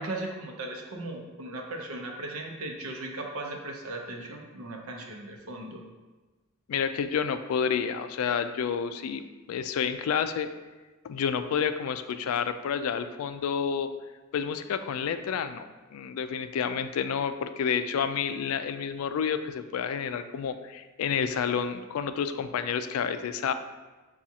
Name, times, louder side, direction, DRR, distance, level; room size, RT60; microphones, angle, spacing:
voice 1, 0.0-5.8, right 2 dB, 85° right, 2 dB, 0.7 m, -37 dB
voice 2, 6.7-9.2 9.5-10.5 11.0-13.9 14.3-15.7 15.9-23.5, left 7 dB, 75° left, 10 dB, 0.3 m, -29 dB
7.1 x 2.4 x 2.7 m, 1.2 s
head